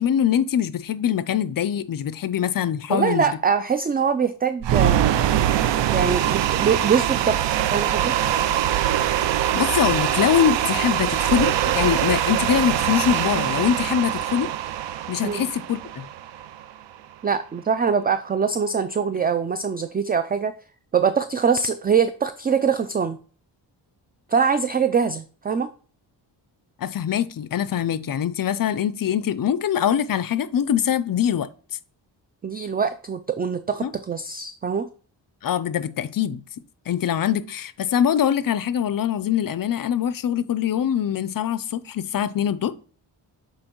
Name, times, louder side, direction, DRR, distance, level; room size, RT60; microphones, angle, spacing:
voice 1, 0.0-3.3 9.5-14.5 15.1-15.8 26.8-31.5 33.8-33.9 35.4-36.4 36.9-42.7, left 9 dB, 50° left, 0.5 m, -23 dB
voice 2, 2.9-5.1 5.9-8.1 15.2-15.5 17.2-20.5 20.9-23.2 24.3-25.7 32.4-34.9, right 6 dB, 25° right, 0.3 m, -23 dB
sound 1, 4.6-16.8, right 11 dB, 75° right, 0.6 m, -23 dB
7.5 x 4.4 x 3.0 m
cardioid pair, 95°, 44 cm